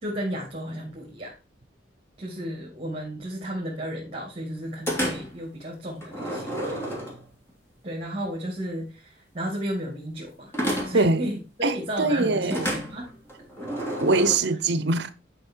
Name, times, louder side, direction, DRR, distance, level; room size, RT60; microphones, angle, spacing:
voice 1, 0.0-1.3 2.2-6.8 7.8-13.1, equal, 30° right, 2.5 m, -33 dB
sound 1, 4.9-5.4 6.0-7.5 10.5-11.2 12.5-14.4, equal, 10° left, 2.8 m, -30 dB
voice 2, 11.6-12.7 14.0-15.1, right 3 dB, 55° right, 0.9 m, -23 dB
10.0 x 5.7 x 4.6 m
head